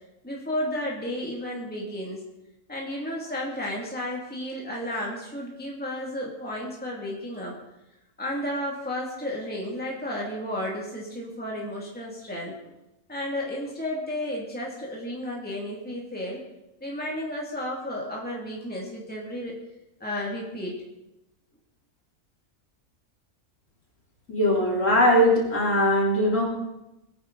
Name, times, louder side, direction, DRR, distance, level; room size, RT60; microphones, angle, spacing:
voice 1, 0.2-2.2 2.7-7.5 8.2-12.7 13.1-16.4 16.8-19.5 20.0-20.8, left 1 dB, 5° left, -3 dB, 2.4 m, -32 dB
voice 2, 24.3-26.4, equal, 55° left, -4 dB, 4.0 m, -20 dB
22.0 x 9.6 x 4.0 m, 0.92 s
omnidirectional pair, 1.6 m